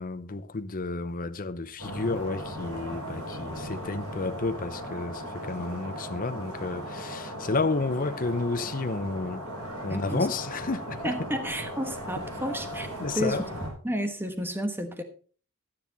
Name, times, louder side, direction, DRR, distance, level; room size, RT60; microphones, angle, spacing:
voice 1, 0.0-9.4 9.8-11.1 13.0-13.4, left 3 dB, 40° left, 0.8 m, -31 dB
sound 1, 1.8-13.7, equal, 80° right, 5.2 m, -37 dB
voice 2, 9.9-10.3 11.0-13.5 13.8-15.0, equal, 10° right, 1.2 m, -31 dB
12.0 x 9.9 x 4.1 m
head